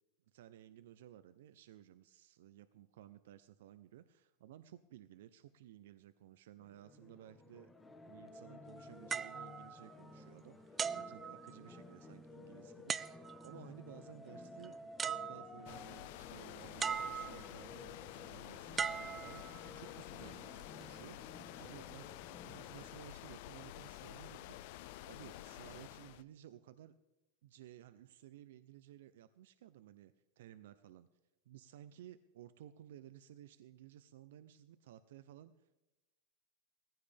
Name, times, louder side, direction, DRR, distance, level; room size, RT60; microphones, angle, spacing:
voice 1, 0.3-13.0 13.4-19.4 19.8-21.2 21.6-24.6 25.0-26.9 27.4-31.1 31.5-35.8, right 12 dB, 80° right, 12 dB, 0.6 m, -56 dB
sound 1, 6.6-22.9, left 3 dB, 10° left, 0.8 m, -55 dB
sound 2, 9.1-10.3 10.8-11.9 12.9-13.6 14.6-14.7 15.0-15.8 16.8-17.6 18.8-19.9 20.6-20.8, right 7 dB, 20° right, 0.3 m, -40 dB
sound 3, 15.7-26.2, left 14 dB, 60° left, 0.5 m, -50 dB
17.5 x 15.0 x 3.4 m, 1.0 s
supercardioid pair, 145°, 0 cm